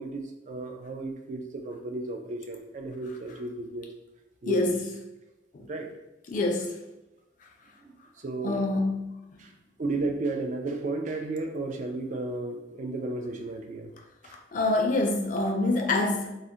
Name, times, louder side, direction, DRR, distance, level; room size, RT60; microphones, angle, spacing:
voice 1, 0.0-3.9 4.4-4.8 5.6-5.9 7.8-8.7 9.4-9.5 9.8-13.9 14.2-14.4, right 2 dB, 45° right, 4 dB, 0.3 m, -34 dB
voice 2, 4.5-4.8 5.5-5.7 6.3-6.8 8.4-9.2 14.3-16.3, left 2 dB, 45° left, 3 dB, 0.4 m, -26 dB
3.6 x 2.1 x 2.7 m, 0.96 s
head